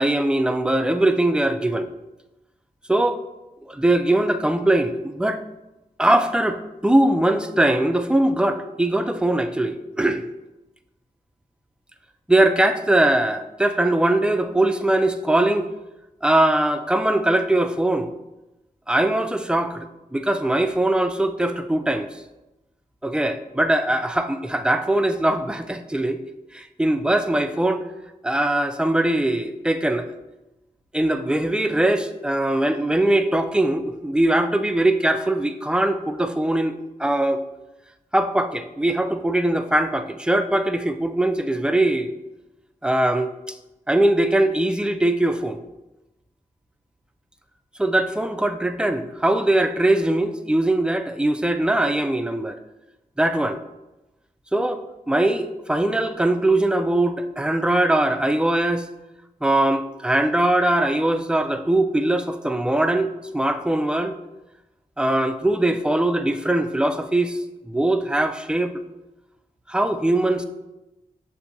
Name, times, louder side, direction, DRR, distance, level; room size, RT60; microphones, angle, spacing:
voice 1, 0.0-1.9 2.9-3.2 3.7-5.4 6.0-10.2 12.3-15.7 16.2-18.1 18.9-22.1 23.0-26.2 26.5-27.8 28.2-30.1 30.9-37.4 38.1-42.1 42.8-43.6 43.9-45.6 47.8-52.6 53.2-53.6 54.5-54.8 55.1-58.9 59.4-64.2 65.0-67.4 67.6-68.7 69.7-70.5, right 1 dB, 5° right, 8 dB, 0.3 m, -21 dB
6.8 x 2.6 x 2.6 m, 1.0 s
cardioid pair, 50°, 15 cm